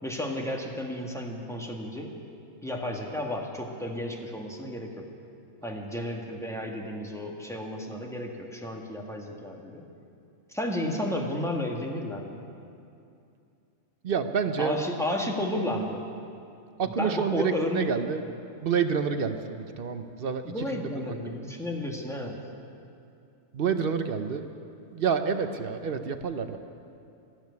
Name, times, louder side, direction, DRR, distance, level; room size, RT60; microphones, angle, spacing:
voice 1, 0.0-2.1 2.6-5.1 5.6-9.8 10.5-12.4 14.6-16.0 16.8-17.9 20.4-22.4, left 1 dB, ahead, 0 dB, 1.5 m, -32 dB
voice 2, 14.0-14.8 16.8-18.2 18.6-21.1 23.5-24.5 24.9-26.6, right 6 dB, 50° right, 8 dB, 0.8 m, -28 dB
12.5 x 12.0 x 9.5 m, 2.6 s
omnidirectional pair, 1.4 m